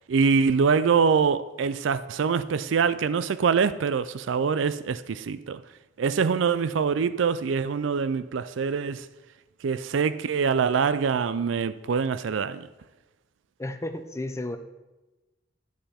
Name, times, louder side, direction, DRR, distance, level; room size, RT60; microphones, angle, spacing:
voice 1, 0.1-5.6 6.0-9.1 9.6-12.7, right 5 dB, 85° right, 0.4 m, -24 dB
voice 2, 13.6-14.6, left 1 dB, 15° left, 0.6 m, -32 dB
11.5 x 7.8 x 4.3 m
head